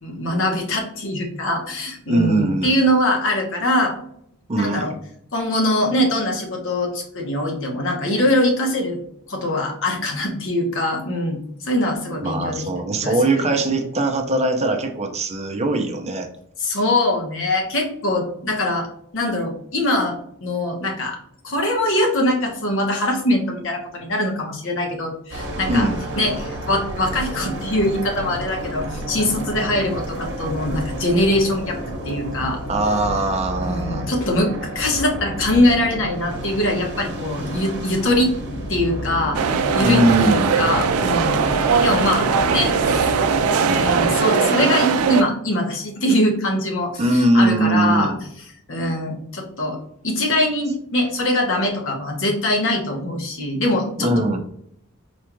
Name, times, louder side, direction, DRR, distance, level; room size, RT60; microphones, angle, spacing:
voice 1, 0.0-3.9 4.5-4.9 5.3-9.0 9.3-12.7 13.0-13.4 16.6-18.9 19.1-21.2 21.4-25.9 26.2-31.8 32.0-32.6 33.6-38.3 38.7-39.4 39.7-41.5 41.8-42.8 43.3-48.1 48.7-49.8 50.0-54.1, left 1 dB, 60° left, 1 dB, 1.1 m, -22 dB
voice 2, 2.1-2.8 4.5-4.9 12.2-16.3 25.7-26.0 32.7-34.1 39.8-40.5 47.0-48.2 54.0-54.4, right 1 dB, 30° right, 4 dB, 0.6 m, -20 dB
sound 1, 25.3-44.1, equal, 55° right, 0.9 m, -31 dB
sound 2, 39.3-45.2, right 5 dB, 75° right, 0.4 m, -20 dB
4.3 x 2.4 x 3.0 m, 0.69 s
head